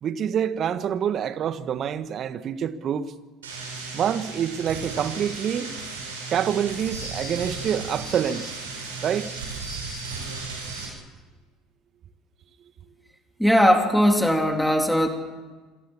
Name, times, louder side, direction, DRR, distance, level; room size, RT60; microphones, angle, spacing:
voice 1, 0.0-3.1 3.9-5.7 6.3-8.6 9.0-9.3, right 8 dB, 45° right, 1.6 m, -26 dB
sound 1, 3.4-10.9, right 3 dB, 80° right, 8.0 m, -35 dB
voice 2, 13.4-15.1, equal, ahead, 3.4 m, -19 dB
27.5 x 21.5 x 7.4 m
hypercardioid pair, 65°, 0 cm